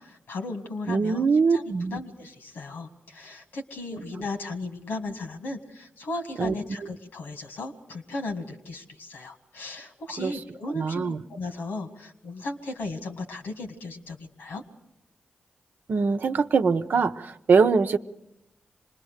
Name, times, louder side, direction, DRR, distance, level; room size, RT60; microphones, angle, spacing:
voice 1, 0.0-1.6 1.9-14.6, left 2 dB, 85° left, 5 dB, 2.0 m, -36 dB
voice 2, 0.9-2.0 6.4-6.5 10.2-10.4 10.7-11.2 15.9-18.0, right 5 dB, 70° right, 8 dB, 0.8 m, -23 dB
26.0 x 20.5 x 6.5 m, 0.87 s
supercardioid pair, 40°, 3 cm